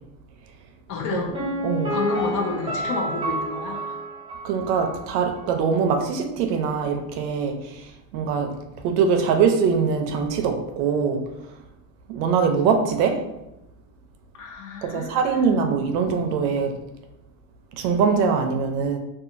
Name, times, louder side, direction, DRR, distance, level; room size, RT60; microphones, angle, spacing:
voice 1, 0.9-1.4 1.9-4.0 14.3-15.6, left 4 dB, 40° left, 1 dB, 0.5 m, -30 dB
Piano, 1.3-5.1 5.4-5.5, right 1 dB, 10° right, 0.5 m, -29 dB
voice 2, 1.6-2.0 4.4-8.5 8.8-11.2 12.1-13.2 14.8-16.7 17.8-19.0, right 6 dB, 75° right, 5 dB, 0.6 m, -22 dB
2.8 x 2.4 x 2.5 m, 0.91 s
supercardioid pair, 140°, 49 cm